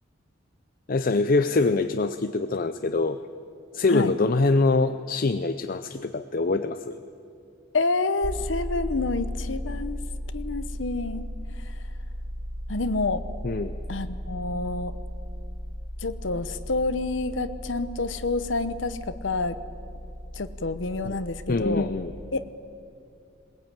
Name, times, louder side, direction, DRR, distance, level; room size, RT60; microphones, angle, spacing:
voice 1, 0.9-3.2 3.7-7.0 13.4-13.8 21.0-21.2 21.5-22.1, left 3 dB, 50° left, 9 dB, 0.6 m, -24 dB
voice 2, 7.7-10.0 10.3-11.3 11.7-11.8 12.7-13.2 13.9-14.9 16.0-19.6 20.3-21.9 22.3-22.5, left 3 dB, 75° left, 11 dB, 0.9 m, -28 dB
sound 1, 8.2-22.1, equal, 45° right, 1.7 m, -36 dB
21.0 x 19.5 x 9.0 m, 2.6 s
head